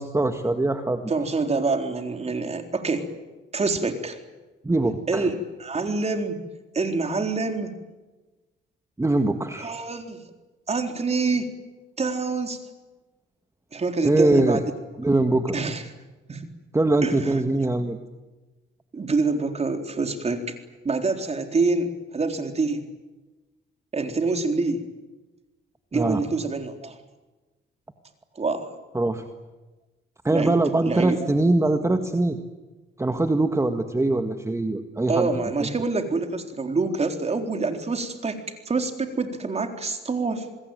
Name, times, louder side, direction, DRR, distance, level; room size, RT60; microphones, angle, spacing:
voice 1, 0.0-1.1 4.6-5.3 9.0-9.7 14.0-14.6 15.0-15.5 16.7-18.0 25.9-26.2 28.9-29.2 30.2-32.4 33.0-35.3, right 2 dB, 15° right, 7 dB, 1.9 m, -22 dB
voice 2, 1.1-3.1 3.5-4.2 5.1-6.4 6.7-7.7 9.6-10.2 10.7-11.5 12.0-12.6 13.7-14.6 15.5-15.8 16.3-16.5 17.0-17.4 18.9-20.5 20.8-22.8 23.9-24.8 25.9-27.0 28.4-28.7 30.3-30.6 30.9-31.3 35.1-38.4 38.7-40.5, right 3 dB, 30° right, 5 dB, 4.0 m, -26 dB
27.0 x 21.0 x 9.3 m, 1.2 s
cardioid pair, 90°, 20 cm